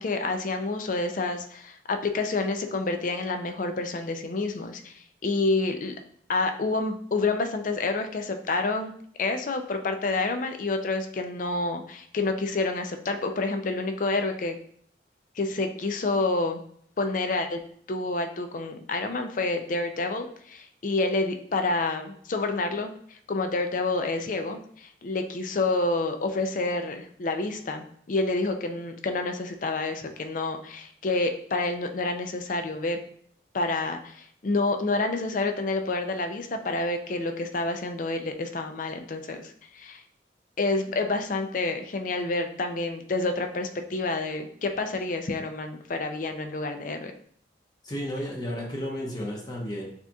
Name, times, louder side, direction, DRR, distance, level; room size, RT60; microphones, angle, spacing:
voice 1, 0.0-5.9 6.3-8.9 9.2-14.6 15.4-16.6 17.0-17.6 17.9-22.9 23.3-33.0 33.5-40.0 40.6-47.1, left 3 dB, 45° left, 6 dB, 0.4 m, -28 dB
voice 2, 47.8-49.9, equal, 20° left, -2 dB, 0.9 m, -32 dB
6.5 x 2.9 x 2.3 m, 0.62 s
head